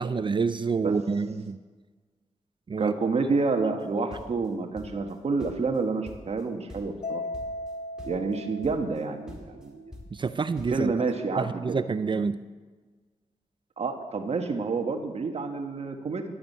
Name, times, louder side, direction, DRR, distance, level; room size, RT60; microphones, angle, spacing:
voice 1, 0.0-1.6 2.7-2.9 10.1-10.9 11.4-12.4, right 5 dB, 40° right, 12 dB, 0.5 m, -27 dB
voice 2, 2.8-7.2 8.0-9.9 10.7-11.8 13.8-16.2, right 4 dB, 60° right, 4 dB, 1.4 m, -29 dB
sound 1, 3.8-5.2 5.4-6.4 6.7-7.1 7.3-7.7 8.0-8.4 8.6-9.0 9.3-10.8, left 1 dB, 5° right, 4.1 m, -45 dB
Mallet percussion, 7.0-9.5, left 2 dB, 60° left, 1.2 m, -37 dB
12.5 x 8.7 x 8.5 m, 1.4 s
cardioid pair, 65°, 12 cm